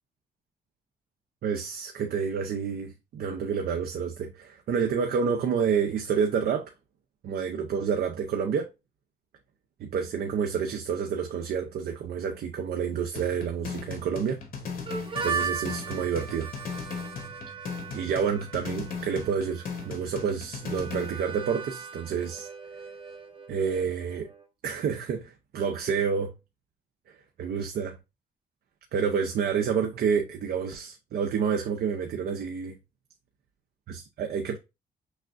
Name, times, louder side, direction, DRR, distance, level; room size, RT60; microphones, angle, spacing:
voice 1, 1.4-6.7 7.2-8.7 9.8-14.4 15.2-16.5 17.9-22.5 23.5-24.3 24.6-26.3 27.1-28.0 28.9-32.8 33.9-34.6, right 6 dB, 70° right, 0.6 m, -29 dB
sound 1, 13.2-21.2, left 5 dB, 60° left, 1.1 m, -38 dB
Harmonica, 14.9-24.5, right 5 dB, 35° right, 0.7 m, -38 dB
6.2 x 2.5 x 2.5 m
wide cardioid pair, 150°, 16 cm